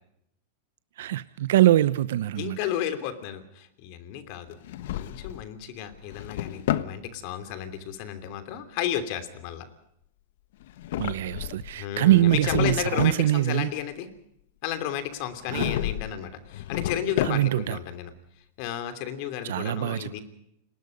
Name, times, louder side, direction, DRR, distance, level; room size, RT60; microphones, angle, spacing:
voice 1, 1.0-2.6 11.0-13.7 15.5-15.8 17.2-17.8 19.4-20.2, right 14 dB, 75° right, 15 dB, 0.8 m, -23 dB
voice 2, 2.4-4.6 4.9-9.7 11.7-14.1 14.6-18.1 18.6-20.2, left 10 dB, 50° left, 9 dB, 3.0 m, -33 dB
Drawer open or close, 4.5-5.5 5.9-7.0 10.6-11.7 12.1-13.2 15.4-16.1 16.5-17.7, left 12 dB, 70° left, 1.2 m, -31 dB
29.0 x 20.0 x 5.3 m, 0.78 s
supercardioid pair, 135°, 0 cm